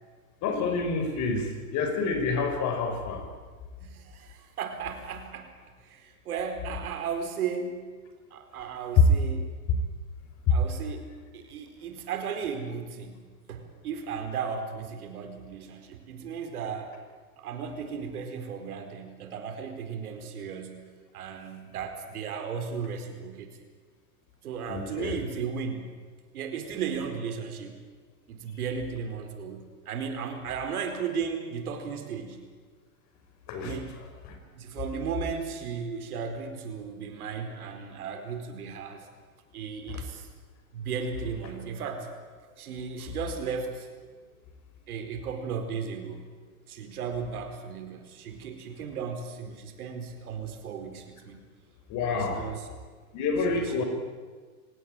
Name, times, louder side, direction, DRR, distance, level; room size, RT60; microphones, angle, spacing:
voice 1, 0.4-3.3 10.5-10.6 24.7-25.2 33.5-33.8 34.2-34.4 39.9-40.0 51.9-52.5 53.1-53.8, left 4 dB, 40° left, 6 dB, 5.4 m, -28 dB
voice 2, 3.8-5.5 5.8-7.9 8.3-9.6 10.5-17.0 17.4-20.9 21.1-23.5 24.4-26.0 26.3-27.8 28.3-32.4 33.6-34.0 34.5-39.1 39.5-40.3 40.7-43.9 44.9-46.3 46.7-51.4 52.1-52.6 53.5-53.8, right 6 dB, 70° right, 6 dB, 4.5 m, -35 dB
26.0 x 17.5 x 8.9 m, 1.5 s
hypercardioid pair, 115°, 45 cm